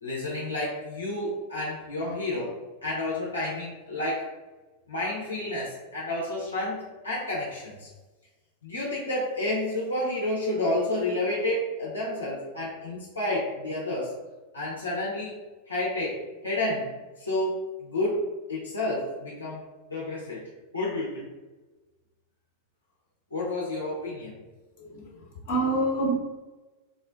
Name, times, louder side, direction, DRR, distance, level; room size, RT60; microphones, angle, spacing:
voice 1, 0.0-4.3 4.9-7.9 8.6-14.1 14.5-15.4 15.7-19.6 19.9-20.4 20.7-21.3 23.3-24.3, left 1 dB, 80° left, -6 dB, 0.6 m, -30 dB
voice 2, 24.8-26.2, right 2 dB, 50° left, -3 dB, 0.9 m, -27 dB
3.7 x 2.1 x 2.5 m, 1.2 s
figure-of-eight pair, 90°, 0 cm